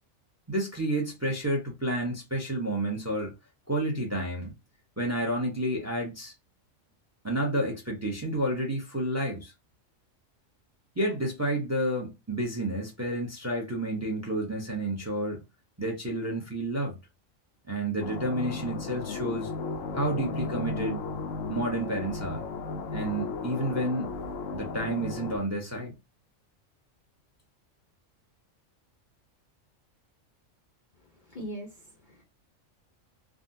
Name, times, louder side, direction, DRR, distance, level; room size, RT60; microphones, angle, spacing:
voice 1, 0.5-3.3 3.7-4.5 5.0-6.3 7.2-9.5 11.0-15.4 15.8-17.0 17.7-19.5 19.9-21.0 21.5-22.5 22.9-24.1 24.5-25.9, right 1 dB, 15° right, 0.6 m, -30 dB
sound 1, 18.0-25.4, left 4 dB, 80° left, 1.0 m, -35 dB
voice 2, 31.2-32.2, right 1 dB, 45° left, 0.7 m, -41 dB
3.6 x 2.1 x 2.6 m
omnidirectional pair, 1.3 m